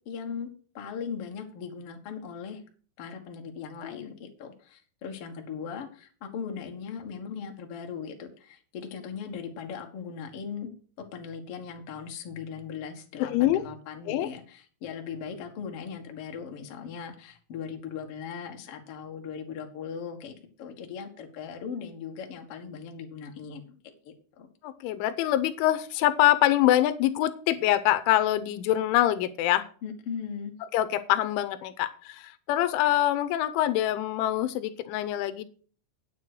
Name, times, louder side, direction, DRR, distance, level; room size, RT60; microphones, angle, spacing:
voice 1, 0.0-0.5 0.7-2.6 3.0-10.7 11.0-23.8 24.0-24.5 29.8-30.6, left 6 dB, 65° left, 3 dB, 1.4 m, -39 dB
voice 2, 13.2-13.7 14.1-14.3 24.6-29.6 30.7-35.4, left 13 dB, 90° left, 11 dB, 3.2 m, -25 dB
9.4 x 7.3 x 6.2 m, 0.43 s
omnidirectional pair, 5.3 m